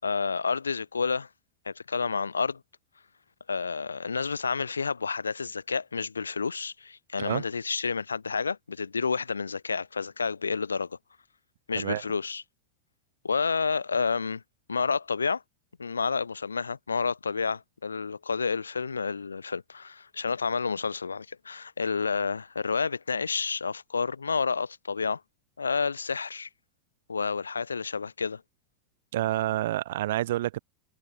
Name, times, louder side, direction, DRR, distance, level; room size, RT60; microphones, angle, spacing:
voice 1, 0.0-1.3 1.6-2.6 3.5-11.0 11.7-12.4 13.2-14.4 14.7-15.4 15.8-25.2 25.6-26.5 27.1-28.4, left 5 dB, 75° left, 4.7 m, -30 dB
voice 2, 29.1-30.6, right 14 dB, 55° right, 3.3 m, -28 dB
figure-of-eight pair, 90°, 0 cm